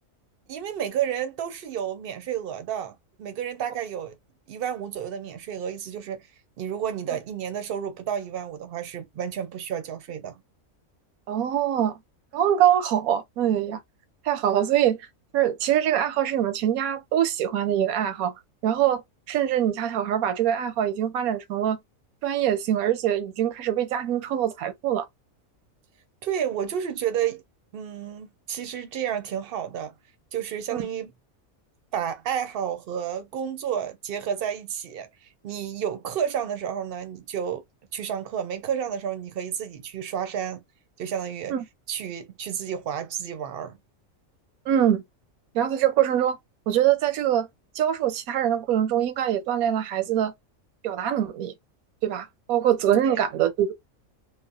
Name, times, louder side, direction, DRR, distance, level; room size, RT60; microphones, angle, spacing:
voice 1, 0.5-4.2 4.5-6.3 6.6-10.4 26.2-27.4 27.7-29.9 30.3-31.1 31.9-37.6 37.9-40.6 41.0-41.5 41.9-43.8 53.0-53.2, right 9 dB, 60° right, 0.6 m, -31 dB
voice 2, 11.3-11.9 12.3-13.8 14.3-15.0 15.3-18.3 18.6-19.0 19.3-21.8 22.2-25.0 30.7-30.9 41.5-41.6 44.7-45.0 45.5-46.4 46.7-47.5 47.8-50.3 50.8-51.5 52.0-53.7, right 10 dB, 85° right, 1.1 m, -23 dB
3.1 x 2.0 x 2.6 m
omnidirectional pair, 1.5 m